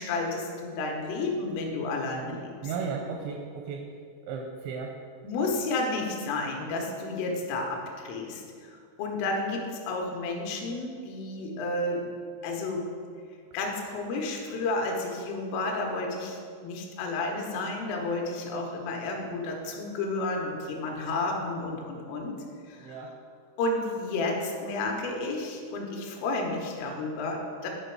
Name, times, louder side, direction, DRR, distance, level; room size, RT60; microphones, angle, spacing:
voice 1, 0.0-2.5 5.2-12.1 12.4-12.8 13.5-16.4 16.6-22.3 22.7-23.0 23.6-27.7, left 2 dB, 80° left, 1 dB, 3.5 m, -31 dB
voice 2, 2.6-3.9 4.2-4.9 22.8-23.2, right 5 dB, 85° right, 1 dB, 2.6 m, -35 dB
10.5 x 5.1 x 4.6 m, 2.2 s
omnidirectional pair, 5.8 m